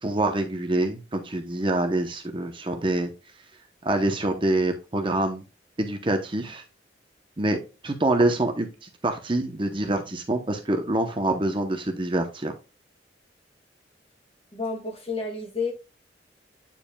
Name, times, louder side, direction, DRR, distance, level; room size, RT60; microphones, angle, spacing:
voice 1, 0.0-3.1 3.8-5.4 5.8-6.6 7.4-7.6 7.8-8.7 9.0-12.5, right 2 dB, 30° right, 0.8 m, -25 dB
voice 2, 14.5-15.7, left 4 dB, 35° left, 2.1 m, -30 dB
8.7 x 4.9 x 2.3 m
head